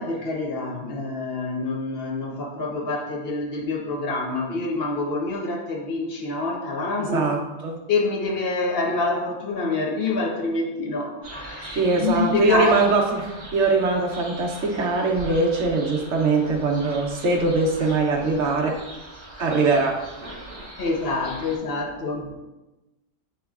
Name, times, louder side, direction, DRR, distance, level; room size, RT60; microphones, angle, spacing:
voice 1, 0.0-7.3 7.9-12.8 20.8-22.4, left 3 dB, 55° left, 0 dB, 1.0 m, -26 dB
voice 2, 7.1-7.8 11.7-18.8 19.4-20.0, right 3 dB, 65° right, 1 dB, 1.0 m, -22 dB
sound 1, 11.2-21.6, right 1 dB, 20° left, 1.5 m, -40 dB
7.7 x 3.0 x 2.3 m, 1.0 s
omnidirectional pair, 1.3 m